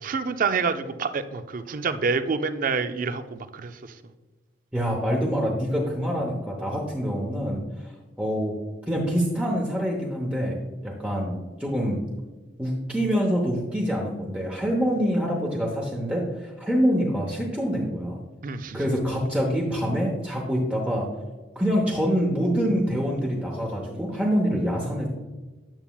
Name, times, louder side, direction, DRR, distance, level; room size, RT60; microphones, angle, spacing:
voice 1, 0.0-3.7 18.4-18.8, right 5 dB, 45° right, 10 dB, 0.4 m, -27 dB
voice 2, 4.7-7.6 8.2-8.5 8.9-10.6 10.8-11.3 11.6-12.0 12.6-18.2 18.7-21.1 21.5-25.1, equal, 5° right, -2 dB, 0.8 m, -25 dB
9.0 x 6.9 x 2.3 m, 1.2 s
head